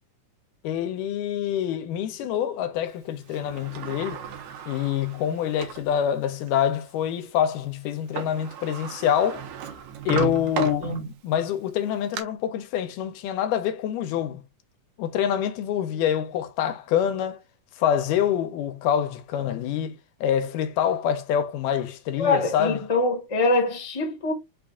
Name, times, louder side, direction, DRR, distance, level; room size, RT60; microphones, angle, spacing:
voice 1, 0.6-4.2 4.7-9.5 10.1-14.4 15.0-17.4 17.8-22.8, left 9 dB, 85° left, 2.2 m, -26 dB
Sliding door, 3.3-5.9 6.5-6.6 7.9-8.0 8.2-11.3 11.8-12.2, right 8 dB, 70° right, 2.0 m, -34 dB
voice 2, 22.2-24.3, left 2 dB, 30° left, 0.6 m, -24 dB
5.2 x 2.4 x 3.6 m
omnidirectional pair, 3.7 m